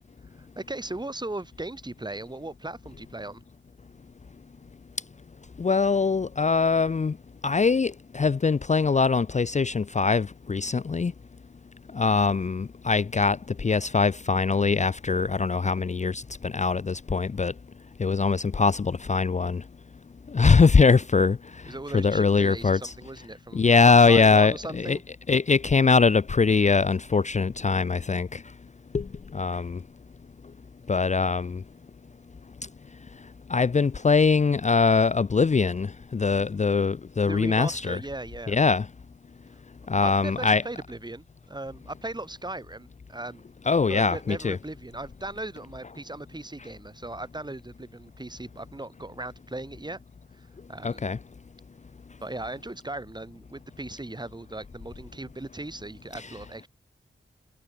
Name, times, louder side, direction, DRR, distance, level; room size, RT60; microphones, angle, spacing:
voice 1, 0.4-3.4 21.7-25.0 37.3-38.6 40.0-43.4 43.9-50.0 50.4-51.0 52.2-56.7, right 2 dB, 20° right, 3.6 m, -38 dB
voice 2, 5.6-7.1 7.4-11.1 12.0-17.5 18.0-19.6 20.3-21.4 21.9-22.9 23.5-25.0 25.3-28.4 28.9-29.0 29.3-29.8 30.9-31.6 33.5-35.9 36.1-38.0 38.5-38.8 39.9-40.6 43.7-44.6 50.8-51.2 56.2-56.3, left 4 dB, 35° left, 0.6 m, -22 dB
wide cardioid pair, 95°, 20 cm